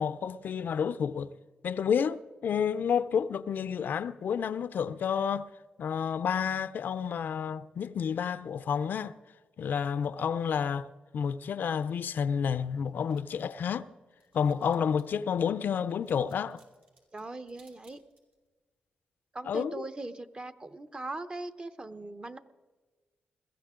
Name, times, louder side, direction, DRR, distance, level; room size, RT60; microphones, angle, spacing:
voice 1, 0.0-1.3 1.6-5.5 5.8-9.2 9.6-10.9 11.1-13.9 14.3-16.6 19.5-19.8, left 7 dB, 70° left, 0.5 m, -30 dB
sound 1, 12.8-15.2 15.7-18.5, right 3 dB, 70° right, 6.0 m, -65 dB
voice 2, 17.1-18.0 19.3-22.4, right 2 dB, 30° right, 0.9 m, -40 dB
21.5 x 15.0 x 3.7 m
cardioid pair, 70°, 3 cm